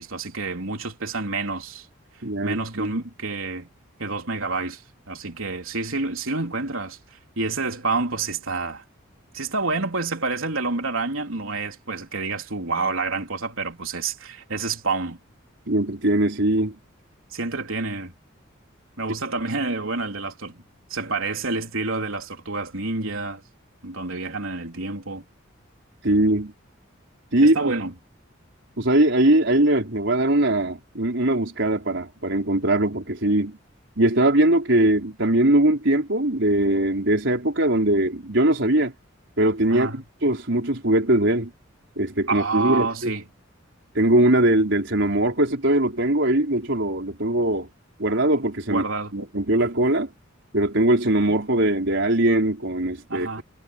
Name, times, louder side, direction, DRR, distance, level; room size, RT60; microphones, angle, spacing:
voice 1, 0.0-1.9 2.4-3.7 4.0-4.8 5.1-7.0 7.4-8.8 9.3-15.2 17.3-18.1 19.0-20.6 20.9-23.4 23.8-25.2 27.4-27.9 39.7-40.0 42.3-43.2 48.7-49.1 53.1-53.4, right 3 dB, 85° right, 3.6 m, -28 dB
voice 2, 2.2-2.9 15.7-16.7 26.0-26.5 27.3-27.6 28.8-33.6 34.0-38.9 39.4-41.5 42.0-43.1 43.9-47.7 48.0-48.8 49.1-50.1 50.5-53.4, right 1 dB, 60° right, 4.9 m, -21 dB
head